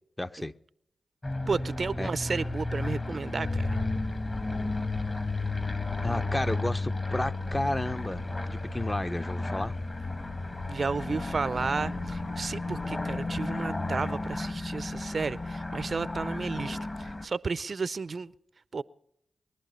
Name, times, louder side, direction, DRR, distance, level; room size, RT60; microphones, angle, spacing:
voice 1, 0.2-0.5 2.0-2.1 3.1-3.2 6.0-9.8, left 1 dB, 20° left, 0.6 m, -32 dB
sound 1, 1.2-17.2, left 2 dB, 35° left, 1.6 m, -33 dB
voice 2, 1.5-3.8 10.7-18.3 18.7-18.8, right 4 dB, 55° right, 0.5 m, -32 dB
Organ, 3.3-14.4, left 2 dB, 55° left, 3.2 m, -42 dB
sound 2, 3.4-13.1, left 5 dB, 75° left, 0.6 m, -45 dB
22.0 x 11.5 x 5.4 m
supercardioid pair, 40°, 0 cm